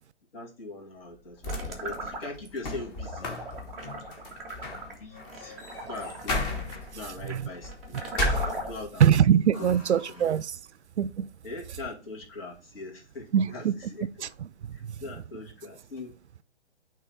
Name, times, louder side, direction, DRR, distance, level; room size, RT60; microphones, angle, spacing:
voice 1, 0.3-3.4 4.9-5.6 5.9-6.4 6.9-8.0 8.7-9.1 9.6-9.7 10.1-10.3 11.4-14.3 14.7-16.1, left 3 dB, 55° left, 2.4 m, -41 dB
sound 1, 1.1-9.1 9.5-10.3, left 2 dB, 20° left, 0.9 m, -35 dB
sound 2, 1.4-2.6 3.0-8.9, right 2 dB, ahead, 0.4 m, -37 dB
voice 2, 9.0-10.6 11.0-11.3 13.3-13.7 14.2-14.5, right 9 dB, 70° right, 0.5 m, -23 dB
8.4 x 3.1 x 4.5 m
figure-of-eight pair, 130°, 35 cm